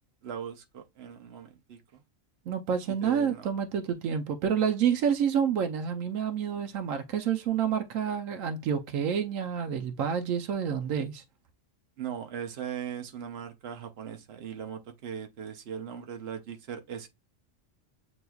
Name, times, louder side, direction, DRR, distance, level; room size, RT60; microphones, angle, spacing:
voice 1, 0.2-2.0 3.0-3.5 12.0-17.1, right 8 dB, 55° right, 1.0 m, -39 dB
voice 2, 2.5-11.2, right 8 dB, 85° right, 1.1 m, -28 dB
7.9 x 2.9 x 2.3 m
omnidirectional pair, 1.3 m